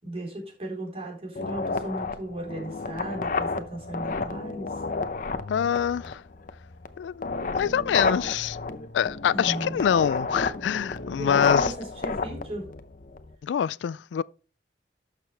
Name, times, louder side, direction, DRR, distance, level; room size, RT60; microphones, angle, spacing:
voice 1, 0.0-4.7 9.3-9.8 11.2-12.7, right 1 dB, 35° right, 4.1 m, -36 dB
sound 1, 1.3-13.3, left 4 dB, 50° left, 0.7 m, -30 dB
voice 2, 5.5-6.2 7.0-7.3 7.6-8.6 8.9-11.7 13.4-14.2, left 8 dB, 90° left, 0.3 m, -25 dB
12.0 x 6.7 x 3.4 m
head